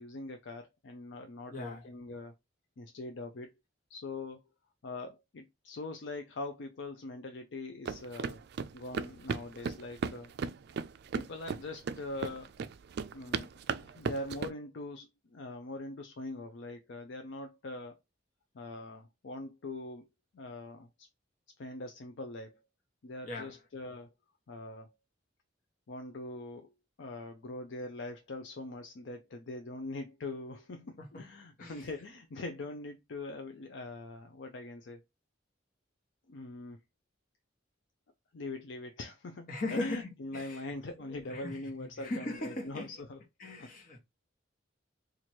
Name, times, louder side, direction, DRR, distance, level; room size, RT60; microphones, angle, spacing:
voice 1, 0.0-2.3 2.8-3.5 3.9-4.4 4.8-8.4 8.7-10.3 11.1-12.5 13.1-13.5 13.8-18.0 18.5-20.1 20.3-21.1 21.6-22.6 23.0-24.1 24.5-24.9 25.9-26.7 27.0-35.0 36.3-36.8 38.3-43.2 43.6-43.7, left 2 dB, 70° left, 0.5 m, -42 dB
voice 2, 1.5-1.9 23.2-23.5 31.0-31.3 31.6-31.9 39.5-41.6 42.0-42.9 43.4-44.0, left 2 dB, 45° left, 1.1 m, -39 dB
sound 1, 7.8-14.5, right 5 dB, 55° right, 0.3 m, -36 dB
3.0 x 2.5 x 4.3 m
head